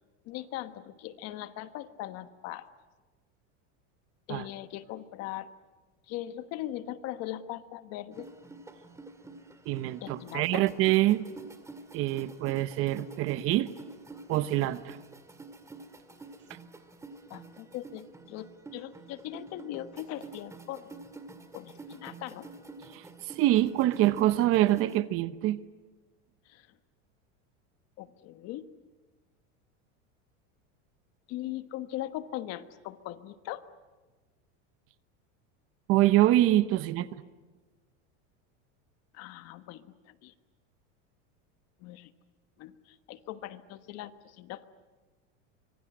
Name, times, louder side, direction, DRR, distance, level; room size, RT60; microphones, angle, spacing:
voice 1, 0.2-2.7 4.3-5.5 6.1-8.3 10.0-10.6 17.3-20.9 21.5-22.5 26.5-26.7 28.0-28.6 31.3-33.6 39.1-40.3 41.8-42.1 42.6-44.6, left 14 dB, 45° left, 11 dB, 1.3 m, -40 dB
sound 1, 8.1-25.0, right 3 dB, 10° right, 1.9 m, -48 dB
voice 2, 9.7-11.2 11.9-13.7 14.3-15.0 22.9-25.6 35.9-37.2, right 15 dB, 40° right, 14 dB, 0.9 m, -25 dB
25.0 x 23.0 x 9.9 m, 1.3 s
supercardioid pair, 160°, 35 cm